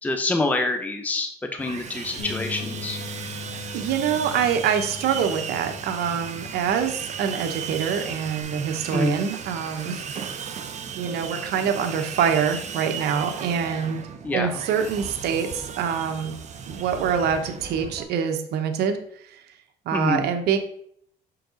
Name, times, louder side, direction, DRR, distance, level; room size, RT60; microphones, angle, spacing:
voice 1, 0.0-3.0 8.9-9.1 14.2-14.5 19.9-20.2, left 2 dB, 10° left, 6 dB, 0.6 m, -26 dB
Sawing, 1.6-18.0, right 7 dB, 45° right, 0.7 m, -36 dB
Bass guitar, 2.2-8.4, left 7 dB, 85° left, 1.7 m, -40 dB
voice 2, 3.7-10.0 11.0-14.0 14.3-16.3 16.7-19.0 19.3-19.4 19.9-20.6, right 7 dB, 75° right, 6 dB, 1.0 m, -25 dB
6.4 x 4.5 x 3.8 m, 0.66 s
cardioid pair, 110°, 17 cm